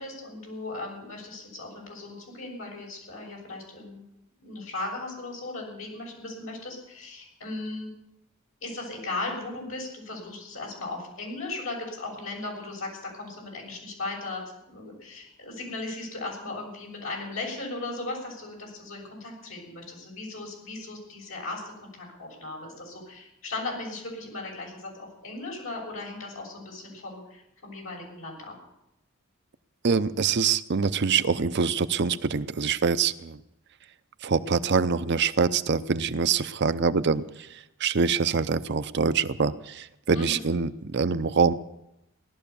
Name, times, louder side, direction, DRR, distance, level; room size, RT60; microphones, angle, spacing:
voice 1, 0.0-4.0 4.4-7.9 8.6-14.4 14.7-24.9 25.2-28.5 40.1-40.4, left 2 dB, 75° left, -1 dB, 6.9 m, -37 dB
voice 2, 29.8-33.4 34.2-37.2 37.8-41.5, right 5 dB, 55° right, 12 dB, 0.6 m, -24 dB
17.5 x 12.0 x 7.0 m, 0.86 s
head